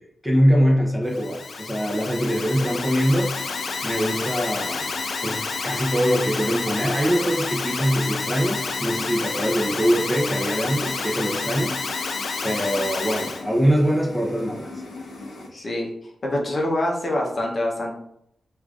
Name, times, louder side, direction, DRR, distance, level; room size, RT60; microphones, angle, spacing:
voice 1, 0.2-3.3 3.8-4.9 5.2-11.7 12.4-14.7, equal, 5° right, -2 dB, 0.6 m, -23 dB
Alarm, 1.1-13.4, left 4 dB, 65° left, 0.4 m, -29 dB
sound 1, 2.6-15.5, left 2 dB, 85° left, 0.8 m, -40 dB
voice 2, 15.5-15.9 16.2-17.9, left 1 dB, 40° left, -1 dB, 0.7 m, -25 dB
4.7 x 2.4 x 2.4 m, 0.73 s
wide cardioid pair, 145°, 0 cm